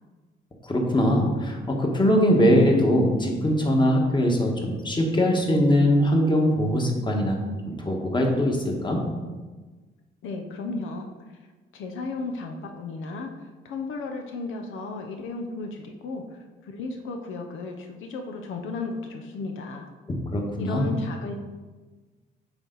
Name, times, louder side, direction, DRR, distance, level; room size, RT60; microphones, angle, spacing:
voice 1, 0.6-7.4 7.6-9.0 20.1-20.9, equal, 25° left, 1 dB, 1.4 m, -22 dB
voice 2, 10.2-11.0 11.7-13.3 13.6-19.9 20.6-21.3, left 3 dB, 80° left, 4 dB, 0.8 m, -34 dB
8.8 x 4.3 x 4.0 m, 1.3 s
cardioid pair, 90°, 20 cm